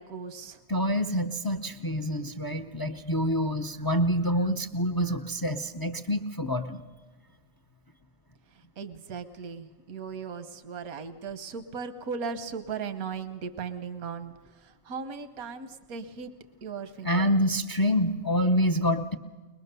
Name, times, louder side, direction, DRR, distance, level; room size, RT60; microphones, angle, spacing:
voice 1, 0.0-0.6 8.8-14.3 14.6-16.3 16.6-17.3, right 5 dB, 85° right, 10 dB, 1.4 m, -37 dB
voice 2, 0.7-6.8 17.0-19.2, equal, 35° left, 10 dB, 0.3 m, -27 dB
22.0 x 21.5 x 6.7 m, 1.3 s
omnidirectional pair, 1.5 m